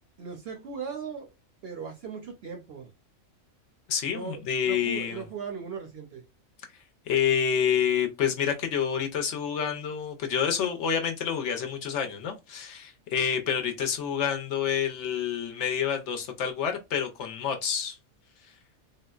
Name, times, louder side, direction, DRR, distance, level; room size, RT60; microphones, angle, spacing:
voice 1, 0.2-1.3 1.6-2.9 4.1-6.2, right 6 dB, 60° right, 0.7 m, -38 dB
voice 2, 3.9-5.2 7.1-18.0, left 8 dB, 65° left, 0.8 m, -28 dB
3.6 x 2.1 x 2.2 m
omnidirectional pair, 1.4 m